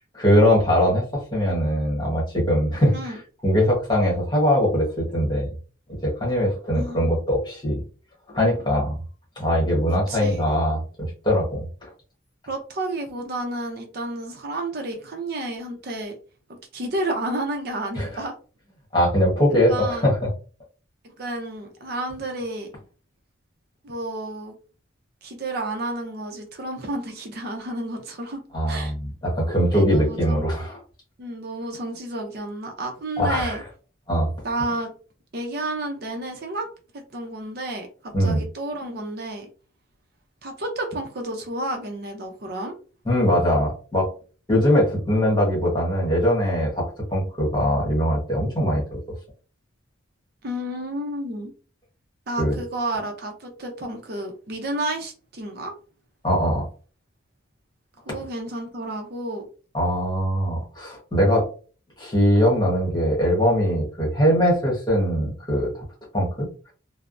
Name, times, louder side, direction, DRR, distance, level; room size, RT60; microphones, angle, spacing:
voice 1, 0.1-3.2 3.4-5.5 5.9-7.8 8.3-9.0 9.4-11.9 17.9-18.1 18.9-20.3 28.5-30.8 33.2-33.6 34.1-34.3 38.1-38.4 43.0-44.1 44.5-49.2 52.4-52.6 56.2-56.7 59.7-61.4 62.0-65.8 66.1-66.5, equal, 20° left, -4 dB, 1.2 m, -21 dB
voice 2, 6.7-7.2 9.9-10.5 12.5-16.1 16.7-18.3 19.7-20.1 21.0-22.7 23.8-24.5 25.2-28.4 28.7-28.9 29.7-30.5 31.2-33.6 34.4-34.9 35.3-36.7 36.9-39.5 40.4-42.7 50.4-51.5 52.3-55.7 58.1-59.5, right 1 dB, 50° right, 3 dB, 0.5 m, -31 dB
3.2 x 2.0 x 2.5 m, 0.37 s
head